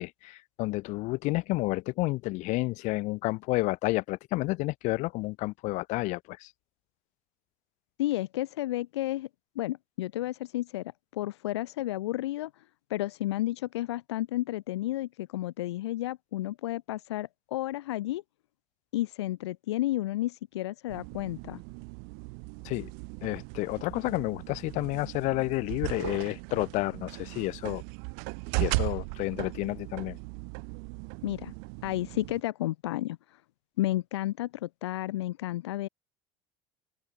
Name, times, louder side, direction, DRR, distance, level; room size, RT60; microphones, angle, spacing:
voice 1, 0.0-6.5 22.6-22.9 23.2-27.8 28.6-30.2, left 21 dB, 65° left, 1.2 m, -30 dB
voice 2, 8.0-9.3 9.6-12.6 12.9-18.2 18.9-21.6 31.2-31.5 31.8-33.4 33.8-35.9, left 15 dB, 85° left, 0.7 m, -32 dB
sound 1, 20.9-32.4, right 40 dB or more, 70° right, 0.6 m, -37 dB
hypercardioid pair, 85°, 14 cm